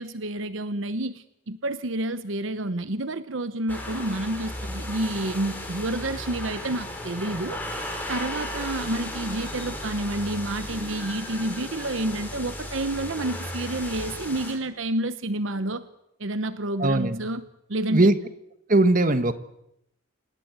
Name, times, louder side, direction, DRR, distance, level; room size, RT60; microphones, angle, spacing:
voice 1, 0.0-7.6 8.1-15.8 16.2-17.4 17.7-18.1, right 1 dB, 65° right, 12 dB, 1.0 m, -29 dB
sound 1, 3.7-14.5, left 1 dB, 10° left, 5.7 m, -35 dB
voice 2, 16.8-17.3 17.9-18.1 18.7-19.3, right 2 dB, 40° right, 10 dB, 1.4 m, -19 dB
28.5 x 18.5 x 8.2 m, 0.81 s
head